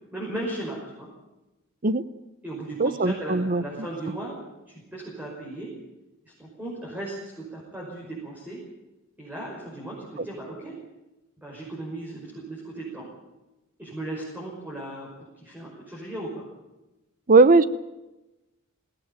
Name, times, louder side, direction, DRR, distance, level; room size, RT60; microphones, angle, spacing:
voice 1, 0.1-1.1 2.4-4.4 4.7-5.7 6.4-8.6 9.2-10.8 11.4-13.1 13.8-15.1 15.4-16.5, right 1 dB, 10° right, -4 dB, 5.7 m, -36 dB
voice 2, 2.8-3.6 17.3-17.6, right 3 dB, 40° right, 16 dB, 0.8 m, -18 dB
20.5 x 17.5 x 9.2 m, 1.0 s
head